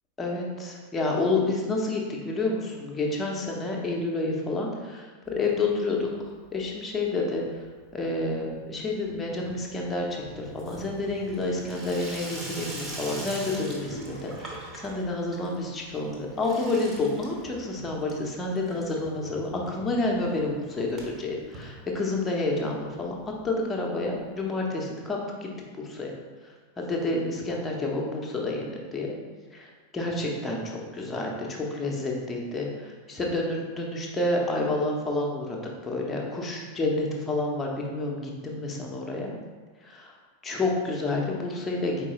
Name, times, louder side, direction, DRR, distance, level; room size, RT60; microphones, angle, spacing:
voice 1, 0.2-7.6 7.9-25.5 25.8-26.1 26.4-29.1 29.5-39.3 39.8-40.2 40.4-42.0, left 2 dB, 15° left, -1 dB, 0.7 m, -29 dB
Water tap faucet / Sink (filling or washing), 5.3-6.0 6.3-6.9 7.2-22.4 22.8-22.9 23.1-23.2 23.4-23.5 24.5-24.6, right 1 dB, 20° right, 0.9 m, -43 dB
4.5 x 3.7 x 3.0 m, 1.4 s
figure-of-eight pair, 90°, 0 cm